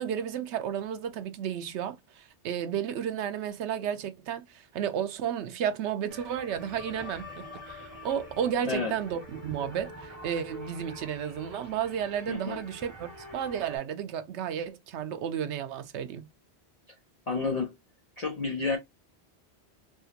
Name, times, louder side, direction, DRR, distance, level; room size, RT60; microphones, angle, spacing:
voice 1, 0.0-16.3, right 9 dB, 85° right, 0.9 m, -33 dB
sound 1, 6.1-13.8, left 1 dB, 40° right, 1.8 m, -45 dB
voice 2, 12.3-12.6 17.3-17.7 18.2-18.8, left 4 dB, 40° left, 0.8 m, -30 dB
3.6 x 2.4 x 2.6 m
omnidirectional pair, 1.1 m